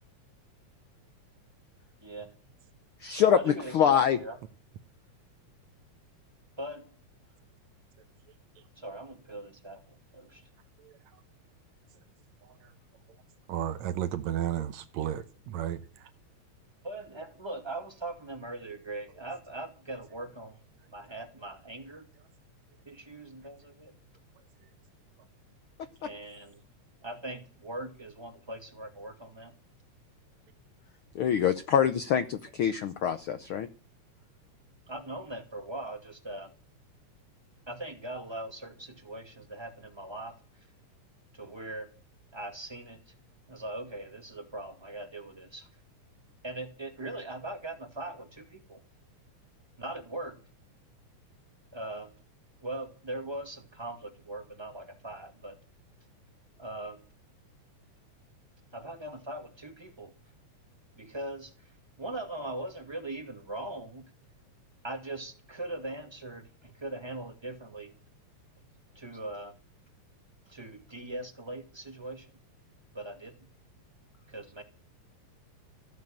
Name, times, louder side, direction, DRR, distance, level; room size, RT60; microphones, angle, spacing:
voice 1, 2.0-2.3 3.3-4.4 6.6-7.0 8.8-10.4 16.8-20.6 20.9-22.1 22.9-23.9 26.0-26.6 27.0-29.5 34.9-36.5 37.7-40.3 41.3-41.9 42.3-43.0 43.5-45.7 46.4-48.8 49.8-50.4 51.7-52.1 52.6-55.6 56.6-57.0 58.7-60.1 61.0-61.5 62.0-64.0 64.8-67.9 69.0-69.6 70.5-72.3 72.9-73.3 74.3-74.6, right 2 dB, 10° right, 1.8 m, -40 dB
voice 2, 3.0-4.2 31.1-33.7, left 8 dB, 70° left, 1.3 m, -25 dB
voice 3, 12.4-12.7 13.5-16.1, right 11 dB, 75° right, 2.1 m, -33 dB
15.0 x 7.8 x 8.8 m
omnidirectional pair, 3.4 m